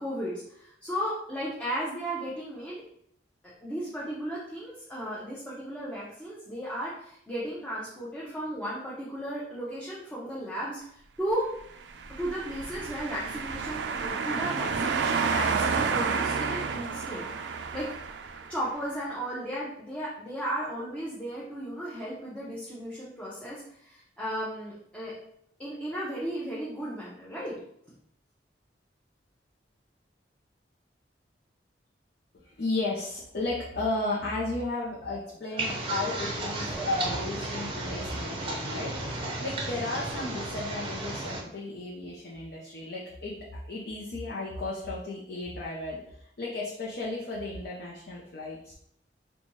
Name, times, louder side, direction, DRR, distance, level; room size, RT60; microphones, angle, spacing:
voice 1, 0.0-2.8 3.4-11.5 12.2-17.9 18.5-25.1 25.6-27.6, right 1 dB, 5° left, -8 dB, 0.7 m, -35 dB
sound 1, 11.9-18.7, right 5 dB, 75° right, 0.3 m, -30 dB
voice 2, 32.3-43.3 43.7-48.7, left 2 dB, 60° left, -5 dB, 0.6 m, -34 dB
sound 2, 35.6-41.4, right 2 dB, 30° right, 0.6 m, -34 dB
4.1 x 2.3 x 3.0 m, 0.71 s
head